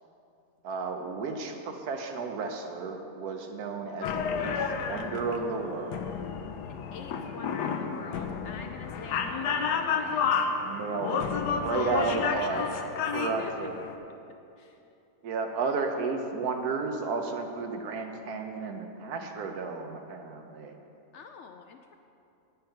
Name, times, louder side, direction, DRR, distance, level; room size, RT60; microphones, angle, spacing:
voice 1, 0.6-6.1 8.8-8.9 10.6-11.2 11.6-12.6 13.1-13.7 15.2-20.7, right 4 dB, 75° right, 5 dB, 1.3 m, -33 dB
sound 1, 4.0-14.0, left 6 dB, 90° left, 1.3 m, -31 dB
voice 2, 6.6-10.5 11.7-13.0 13.4-13.5 14.6-14.8 21.1-21.9, left 5 dB, 70° left, 5 dB, 0.7 m, -44 dB
8.9 x 8.9 x 5.7 m, 2.7 s
omnidirectional pair, 1.7 m